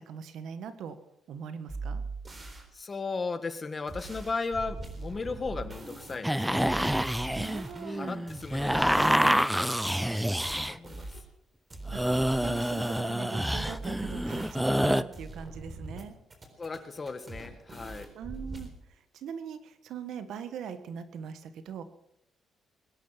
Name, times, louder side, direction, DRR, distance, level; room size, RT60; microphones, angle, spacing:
voice 1, 0.0-1.0 1.3-2.0 7.4-8.2 11.9-16.1 18.1-21.8, right 7 dB, 75° right, 11 dB, 1.5 m, -41 dB
sound 1, 1.7-2.7 3.9-6.2 6.6-9.9 10.4-11.2 11.7-14.8 15.1-16.0 16.3-18.7, right 2 dB, 30° right, 3.9 m, -42 dB
voice 2, 2.7-6.8 7.8-10.4 10.7-11.2 16.6-18.1, left 4 dB, 30° left, 10 dB, 1.6 m, -36 dB
sound 2, 6.2-10.8 11.7-15.0, equal, 5° right, 0.6 m, -27 dB
21.0 x 10.5 x 5.9 m, 0.78 s
cardioid pair, 90°, 0 cm